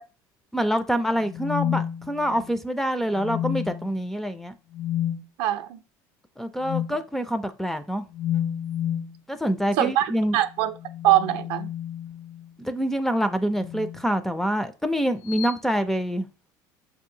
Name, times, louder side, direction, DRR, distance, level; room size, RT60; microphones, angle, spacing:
voice 1, 0.5-4.5 6.4-8.0 9.3-10.4 12.6-16.3, equal, 5° left, 0.3 m, -26 dB
sound 1, 1.2-2.5 3.1-3.9 4.7-5.2 6.6-7.0 8.1-9.2 10.7-12.5 13.6-14.0 15.3-15.5, left 10 dB, 70° left, 1.0 m, -30 dB
voice 2, 5.4-5.8 9.8-10.8 11.0-11.7, right 13 dB, 65° right, 0.5 m, -23 dB
6.5 x 2.7 x 2.6 m
supercardioid pair, 120°, 10 cm